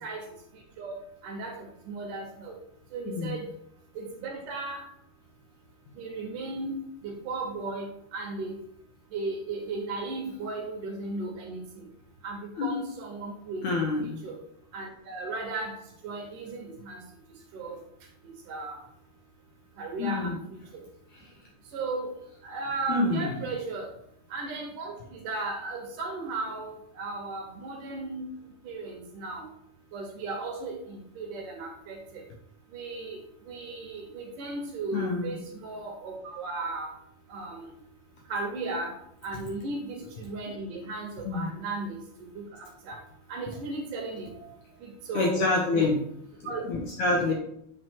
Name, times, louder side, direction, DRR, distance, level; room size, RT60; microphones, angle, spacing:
voice 1, 1.2-1.6 1.9-2.5 2.9-3.5 4.0-4.8 6.0-6.8 7.0-8.5 9.1-11.6 12.2-13.6 14.2-14.3 14.7-15.8 16.0-17.0 17.5-17.8 18.5-18.8 19.8-20.3 21.7-22.1 22.4-23.9 24.3-24.9 25.2-28.2 28.6-29.5 29.9-32.0 32.7-33.2 33.5-36.9 37.3-37.7 38.3-38.9 39.2-42.0 42.3-43.0 43.3-44.3 44.8-45.9 46.4-46.6, right 3 dB, 65° right, 1 dB, 2.5 m, -35 dB
voice 2, 3.1-3.4 5.9-6.0 12.6-12.8 13.6-14.1 20.0-20.4 21.1-21.3 22.9-23.3 34.9-35.4 41.3-41.5 44.4-44.5 45.1-46.0 46.4-47.3, left 3 dB, 70° left, -1 dB, 1.9 m, -27 dB
7.8 x 4.9 x 4.5 m, 0.74 s
omnidirectional pair, 4.5 m